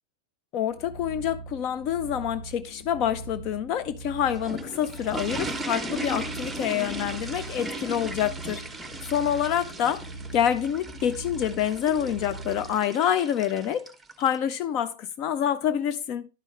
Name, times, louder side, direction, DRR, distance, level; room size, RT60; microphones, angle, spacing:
voice 1, 0.5-8.6 9.0-10.1 10.3-13.8 14.2-16.3, left 9 dB, 40° left, 0.5 m, -27 dB
sound 1, 0.7-12.8, right 2 dB, 55° left, 1.2 m, -41 dB
sound 2, 4.0-14.4, right 1 dB, 10° right, 0.8 m, -37 dB
11.0 x 5.4 x 3.2 m
figure-of-eight pair, 90°, 0 cm